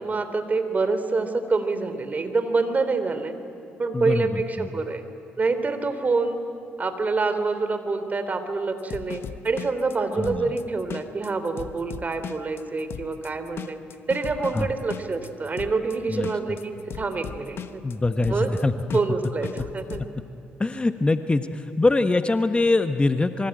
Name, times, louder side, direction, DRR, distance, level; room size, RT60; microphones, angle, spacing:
voice 1, 0.0-3.3 3.8-5.0 5.4-6.4 6.8-13.8 14.1-17.8 18.3-18.5 18.9-20.0, right 3 dB, 35° right, 9 dB, 3.2 m, -26 dB
voice 2, 3.9-4.7 10.2-10.5 14.5-14.7 16.1-16.6 17.8-18.7 20.6-23.5, left 2 dB, 20° left, 9 dB, 1.2 m, -23 dB
sound 1, 8.8-20.1, left 8 dB, 55° left, 1.1 m, -37 dB
26.0 x 23.5 x 9.1 m, 2.6 s
hypercardioid pair, 50°, 5 cm